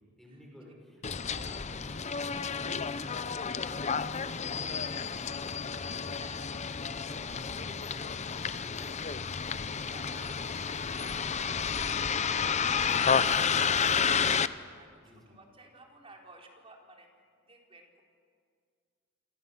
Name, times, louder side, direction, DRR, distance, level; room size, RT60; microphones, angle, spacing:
voice 1, 0.2-3.9 4.5-10.1 10.4-10.9 15.0-15.4, equal, ahead, -2 dB, 6.4 m, -54 dB
Bus, 1.0-14.5, left 6 dB, 30° left, 0.7 m, -31 dB
voice 2, 6.2-6.6 9.5-12.8 14.8-17.1 17.5-18.0, right 2 dB, 25° right, 1 dB, 4.1 m, -54 dB
28.5 x 26.5 x 7.9 m, 2.1 s
head